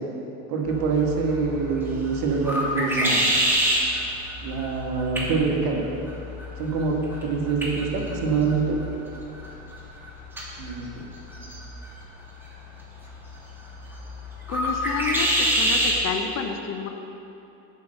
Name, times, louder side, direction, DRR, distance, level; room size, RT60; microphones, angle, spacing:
voice 1, 0.5-3.3 4.4-5.9 6.6-8.8 10.6-11.0, right 5 dB, 60° right, 1 dB, 1.6 m, -25 dB
sound 1, 0.7-16.0, equal, 5° right, 1.9 m, -28 dB
voice 2, 14.5-16.9, left 6 dB, 40° left, 6 dB, 0.8 m, -30 dB
8.1 x 5.6 x 6.4 m, 2.9 s
supercardioid pair, 100°, 41 cm